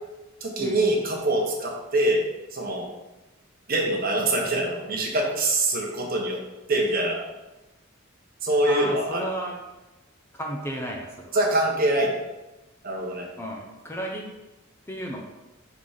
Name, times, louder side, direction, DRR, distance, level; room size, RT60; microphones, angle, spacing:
voice 1, 0.4-2.2 2.5-2.9 3.7-6.4 6.7-7.2 8.4-9.2 11.3-12.1 12.8-13.3, right 1 dB, 45° right, 0 dB, 1.1 m, -24 dB
voice 2, 8.7-9.6 10.3-11.5 13.4-14.3 14.9-15.2, right 1 dB, 10° left, 0 dB, 0.6 m, -33 dB
5.6 x 3.9 x 4.9 m, 1.1 s
head